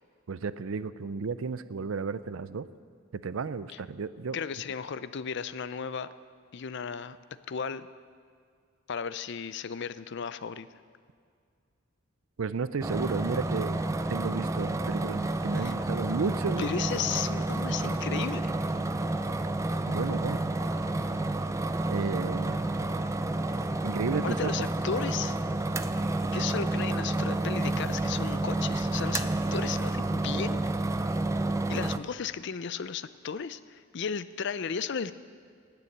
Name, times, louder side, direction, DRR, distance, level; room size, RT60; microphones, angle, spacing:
voice 1, 0.3-2.7 3.1-4.4 12.4-16.9 19.9-20.4 21.9-22.7 23.8-24.5, right 5 dB, 80° right, 15 dB, 0.5 m, -33 dB
voice 2, 4.3-6.1 6.5-7.2 7.5-7.9 8.9-10.7 15.6-15.7 16.6-18.5 24.2-25.4 26.3-30.6 31.7-35.1, left 6 dB, 60° left, 14 dB, 0.5 m, -34 dB
sound 1, 12.8-32.0, right 2 dB, 15° right, 0.4 m, -30 dB
18.5 x 7.0 x 7.9 m, 2.1 s
head